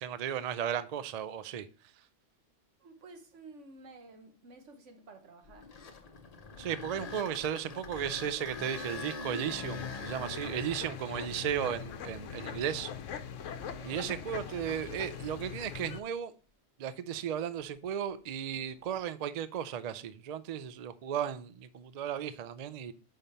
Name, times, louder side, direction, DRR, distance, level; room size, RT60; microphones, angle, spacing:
voice 1, 0.0-1.7 6.6-12.9 13.8-16.3 16.8-22.9, right 9 dB, 90° right, 0.3 m, -35 dB
voice 2, 2.8-5.8 13.6-14.0, right 3 dB, 70° right, 1.4 m, -53 dB
sound 1, 5.4-13.5 14.1-14.2 14.9-15.1 18.6-18.9, left 4 dB, 40° left, 0.7 m, -45 dB
sound 2, 9.6-16.0, left 8 dB, 80° left, 1.0 m, -42 dB
5.7 x 5.3 x 4.2 m
omnidirectional pair, 1.3 m